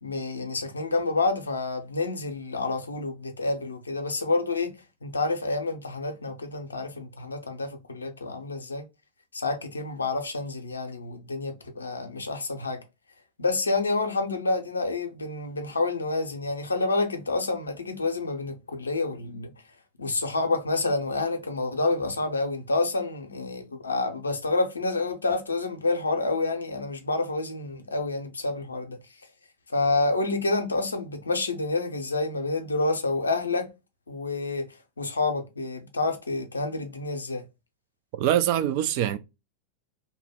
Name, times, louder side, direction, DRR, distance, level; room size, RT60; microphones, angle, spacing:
voice 1, 0.0-4.7 5.0-8.9 9.3-12.8 13.4-19.5 20.0-29.0 29.7-33.7 34.1-34.7 35.0-37.4, left 3 dB, 75° left, 0.6 m, -28 dB
voice 2, 38.2-39.2, right 11 dB, 45° right, 0.3 m, -23 dB
2.7 x 2.1 x 3.5 m
figure-of-eight pair, 90°, 0 cm